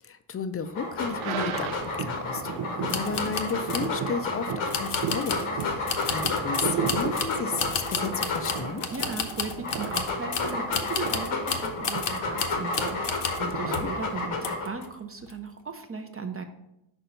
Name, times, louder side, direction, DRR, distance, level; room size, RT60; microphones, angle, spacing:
voice 1, 0.0-8.8 13.5-13.9, left 5 dB, 30° left, 10 dB, 0.5 m, -34 dB
Dog, 0.7-8.9 9.5-14.9, left 3 dB, 90° left, 1.3 m, -31 dB
sound 1, 1.1-14.3, right 7 dB, 80° right, 0.6 m, -36 dB
sound 2, 2.9-3.9 4.7-13.5 13.7-14.0 14.4-14.9 15.2-15.3, left 6 dB, 55° left, 0.8 m, -32 dB
voice 2, 8.9-16.4, right 4 dB, 30° right, 6 dB, 0.5 m, -37 dB
5.4 x 4.4 x 5.2 m, 0.85 s
cardioid pair, 115°, 48 cm